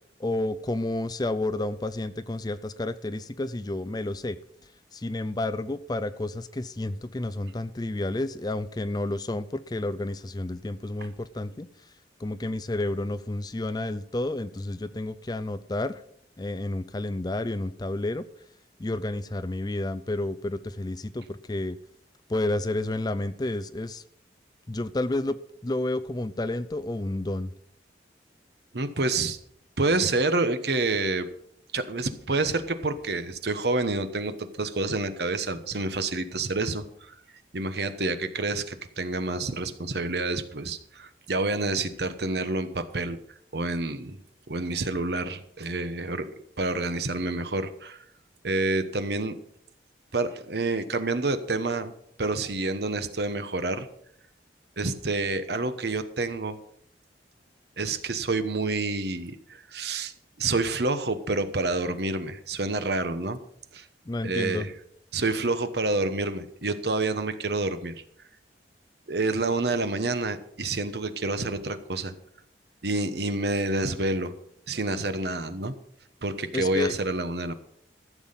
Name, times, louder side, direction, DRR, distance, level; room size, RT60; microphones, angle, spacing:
voice 1, 0.2-4.4 4.9-11.7 12.2-16.0 16.4-18.2 18.8-21.8 22.3-24.0 24.7-25.4 25.6-27.5 64.1-64.7 76.5-76.9, left 2 dB, 20° left, 14 dB, 0.5 m, -30 dB
voice 2, 28.7-29.4 29.8-31.3 31.7-37.1 37.5-43.2 43.5-44.1 44.5-46.3 46.6-48.0 48.4-49.4 50.1-51.9 52.2-53.9 54.8-56.6 57.8-60.1 60.4-63.4 63.7-63.8 64.2-64.7 65.1-67.9 69.1-72.1 72.8-74.3 74.7-75.7 76.2-77.5, right 2 dB, 65° right, 11 dB, 1.1 m, -28 dB
14.5 x 7.2 x 5.7 m, 0.69 s
head